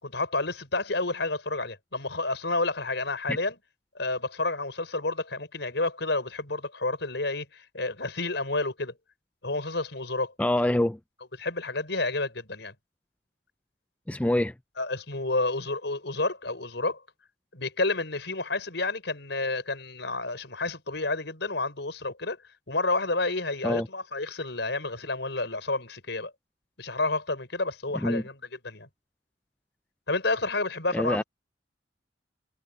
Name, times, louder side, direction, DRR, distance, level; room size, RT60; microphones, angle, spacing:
voice 1, 0.0-3.6 3.9-8.9 9.4-10.3 11.4-12.7 14.8-17.0 17.5-22.4 22.7-26.3 26.8-28.4 28.6-28.9 30.1-31.2, left 2 dB, 70° left, 5.8 m, -30 dB
voice 2, 10.4-11.0 14.1-14.5 23.6-23.9 28.0-28.2 30.9-31.2, left 1 dB, 10° left, 0.4 m, -25 dB
head